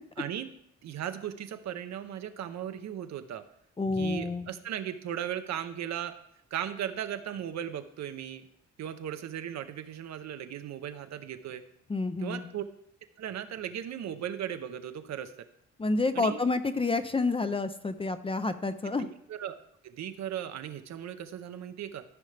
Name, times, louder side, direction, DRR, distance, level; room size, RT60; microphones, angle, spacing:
voice 1, 0.2-0.5 0.8-3.5 4.0-6.1 6.5-8.5 8.8-11.6 12.2-12.6 13.2-15.3 16.1-16.4 19.0-19.6 19.8-22.0, right 10 dB, 65° right, 9 dB, 0.8 m, -37 dB
voice 2, 3.8-4.5 11.9-12.4 15.8-19.1, left 3 dB, 20° left, 11 dB, 0.5 m, -29 dB
14.0 x 5.4 x 3.3 m, 0.75 s
cardioid pair, 90°, 30 cm